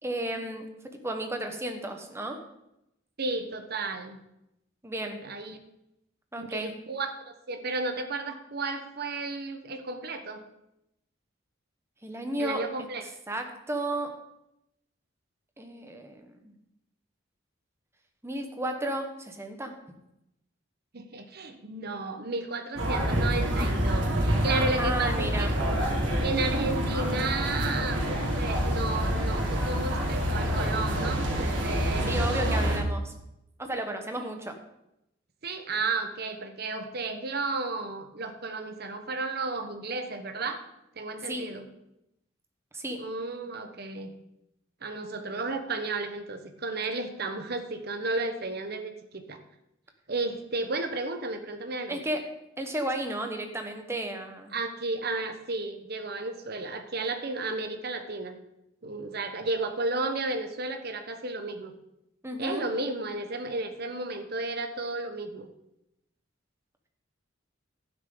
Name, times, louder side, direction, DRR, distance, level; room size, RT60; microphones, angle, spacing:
voice 1, 0.0-2.4 4.8-5.2 6.3-6.7 12.0-12.6 13.3-14.1 15.6-16.5 18.2-19.7 24.8-25.5 32.1-33.1 33.6-34.5 41.3-41.5 42.7-43.0 51.9-52.2 52.6-54.5 62.2-62.6, right 1 dB, 15° right, 4 dB, 1.2 m, -33 dB
voice 2, 3.2-4.2 5.2-5.6 6.4-10.4 12.4-13.0 20.9-25.5 26.2-32.7 34.2-34.3 35.4-40.6 41.0-41.7 43.0-44.1 44.8-49.4 50.1-52.0 54.5-58.4 58.8-61.7 62.4-65.5, right 3 dB, 55° right, 7 dB, 1.2 m, -33 dB
sound 1, 22.8-32.8, equal, 70° right, 3.0 m, -27 dB
11.5 x 9.9 x 3.9 m, 0.85 s
head